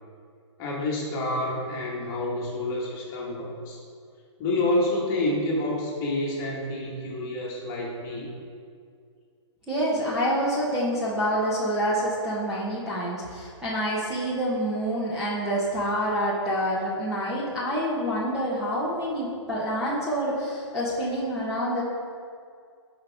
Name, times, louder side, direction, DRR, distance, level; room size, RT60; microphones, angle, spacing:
voice 1, 0.6-3.8 4.4-8.3, left 1 dB, 20° left, -3 dB, 1.8 m, -28 dB
voice 2, 9.7-21.8, equal, 5° right, -10 dB, 1.2 m, -27 dB
15.5 x 5.4 x 3.6 m, 2.2 s
hypercardioid pair, 160°, 16 cm